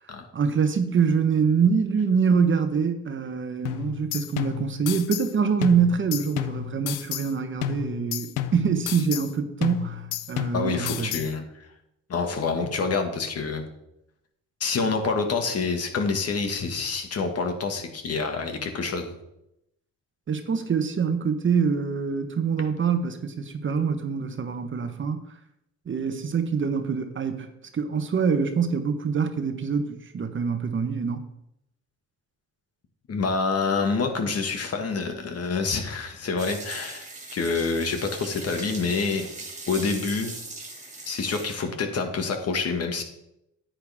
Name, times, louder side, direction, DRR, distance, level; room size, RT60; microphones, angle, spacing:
voice 1, 0.3-11.2 20.3-25.2 25.9-31.3, right 6 dB, 40° right, 9 dB, 1.1 m, -25 dB
sound 1, 3.7-5.3 5.6-7.3 7.6-9.3 9.6-11.3, left 13 dB, 90° left, 0.6 m, -32 dB
voice 2, 10.5-11.7 12.1-13.6 14.6-19.1 33.1-39.3 39.7-40.3 41.1-43.0, left 4 dB, 55° left, 5 dB, 1.8 m, -27 dB
sound 2, 36.4-41.6, right 3 dB, 25° right, 2.2 m, -40 dB
9.7 x 8.9 x 3.6 m, 0.82 s
cardioid pair, 90°, 30 cm